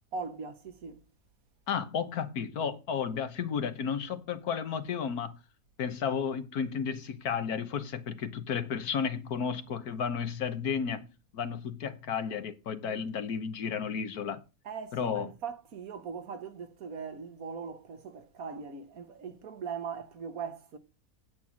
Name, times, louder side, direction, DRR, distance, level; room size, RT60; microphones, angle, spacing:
voice 1, 0.1-1.1 12.8-13.1 14.6-20.8, right 5 dB, 65° right, 1.6 m, -40 dB
voice 2, 1.7-5.4 5.8-11.1 11.3-14.4 14.9-15.3, left 7 dB, 75° left, 1.6 m, -33 dB
8.8 x 8.4 x 6.2 m
omnidirectional pair, 1.6 m